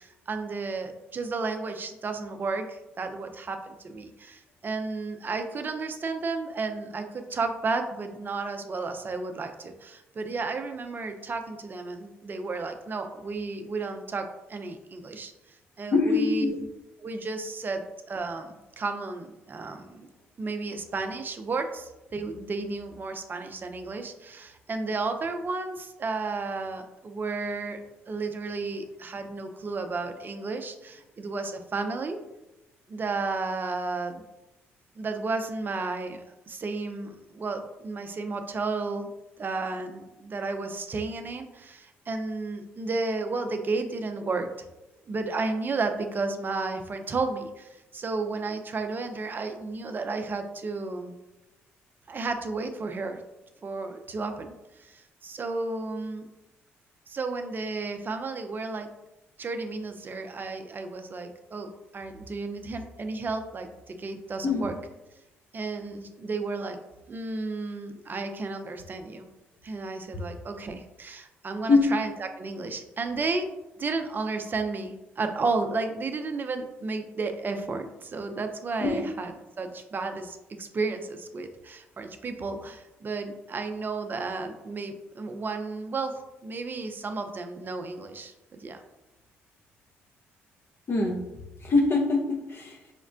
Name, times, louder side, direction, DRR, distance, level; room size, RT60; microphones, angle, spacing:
voice 1, 0.0-15.3 15.8-16.6 17.0-20.1 20.4-27.8 28.1-32.2 32.9-34.2 35.0-39.1 39.4-44.5 45.1-51.1 52.1-53.2 53.6-54.5 54.8-56.3 57.1-58.9 59.4-64.7 65.5-66.8 67.1-69.3 69.6-73.5 73.8-79.3 79.6-88.8, right 3 dB, 35° right, 6 dB, 0.4 m, -33 dB
voice 2, 15.9-16.6 64.4-64.7 71.7-71.9 78.8-79.0 90.9-91.2 91.6-92.8, left 3 dB, 45° left, 1 dB, 0.6 m, -23 dB
4.9 x 2.1 x 2.5 m, 0.96 s
supercardioid pair, 60°, 5 cm